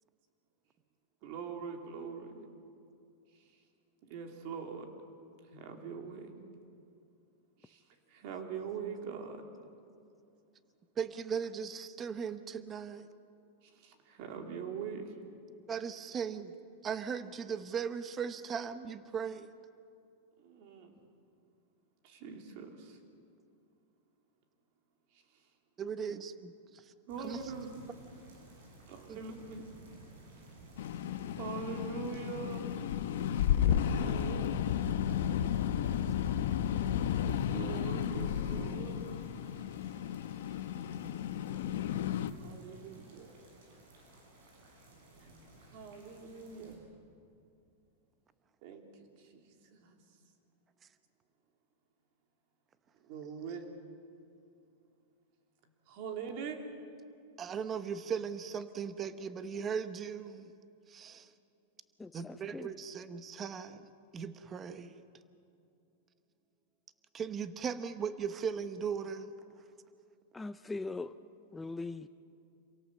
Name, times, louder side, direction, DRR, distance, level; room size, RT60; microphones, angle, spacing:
voice 1, 1.2-2.4 4.0-4.9 5.5-6.3 7.6-7.8 8.1-9.4 13.6-15.2 20.4-20.9 22.0-23.0 27.1-27.8 28.9-29.6 31.4-32.6 33.5-34.5 37.2-39.1 42.4-43.3 45.7-46.8 48.6-48.8 49.3-49.4 49.7-50.0 53.1-53.6 55.9-56.6, right 6 dB, 50° right, 4 dB, 3.0 m, -42 dB
voice 2, 11.0-13.1 15.7-16.5 16.8-19.5 25.8-26.9 27.2-27.5 29.1-29.2 57.4-60.5 60.9-61.3 62.1-65.0 67.1-69.3, right 7 dB, 25° right, 11 dB, 1.0 m, -38 dB
sound 1, 27.1-46.8, right 2 dB, 75° right, 7.1 m, -52 dB
sound 2, 30.8-42.3, left 10 dB, 75° left, 1.0 m, -33 dB
voice 3, 62.0-62.7 70.3-71.1 71.5-72.1, left 3 dB, 10° left, 10 dB, 0.5 m, -40 dB
27.5 x 17.5 x 7.6 m, 2.6 s
supercardioid pair, 140°, 0 cm